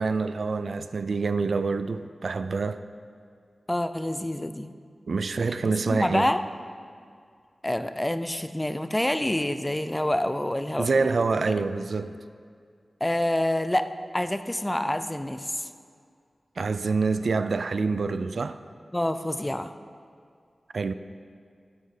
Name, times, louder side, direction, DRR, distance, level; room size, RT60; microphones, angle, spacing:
voice 1, 0.0-2.8 5.1-6.3 10.8-12.1 16.6-18.6 20.7-20.9, right 4 dB, 75° right, 0.3 m, -26 dB
voice 2, 3.7-4.7 5.9-6.4 7.6-11.1 13.0-15.7 18.9-19.8, left 1 dB, 15° left, 0.5 m, -27 dB
9.6 x 8.1 x 5.0 m
cardioid pair, 45°, 0 cm